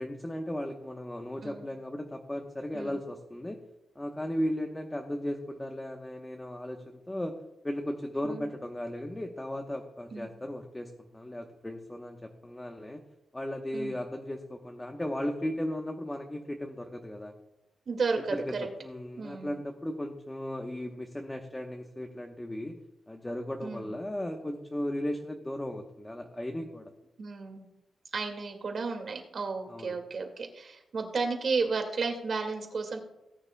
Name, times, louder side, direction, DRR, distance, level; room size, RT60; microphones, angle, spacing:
voice 1, 0.0-3.6 3.9-7.3 7.6-13.0 13.3-17.3 18.3-22.8 23.1-26.9 29.7-30.0, left 1 dB, 10° left, 3 dB, 1.0 m, -36 dB
voice 2, 17.9-18.7 19.2-19.6 23.6-23.9 27.2-27.6 28.1-33.0, right 4 dB, 50° right, 4 dB, 2.0 m, -33 dB
18.5 x 9.5 x 2.2 m, 0.90 s
wide cardioid pair, 130°, 0 cm